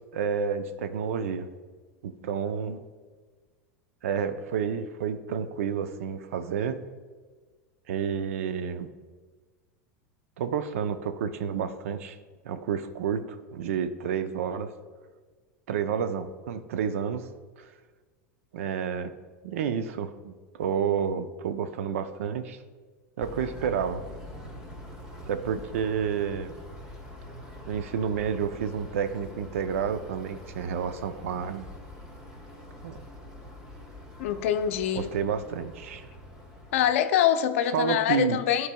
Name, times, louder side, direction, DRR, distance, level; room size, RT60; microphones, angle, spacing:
voice 1, 0.1-1.5 2.0-2.8 4.0-6.8 7.9-8.9 10.4-12.2 12.4-13.2 13.5-14.7 15.7-17.3 17.6-17.7 18.5-19.1 19.4-20.3 20.6-22.6 23.2-24.0 25.3-26.5 27.7-31.7 32.8-33.0 35.0-36.0 37.7-38.4, right 7 dB, 75° right, 10 dB, 0.5 m, -30 dB
sound 1, 23.2-36.9, left 1 dB, 10° right, 2.1 m, -44 dB
voice 2, 34.2-35.1 36.7-38.7, left 10 dB, 70° left, 9 dB, 0.5 m, -24 dB
12.5 x 4.6 x 2.3 m, 1.4 s
hypercardioid pair, 100°, 7 cm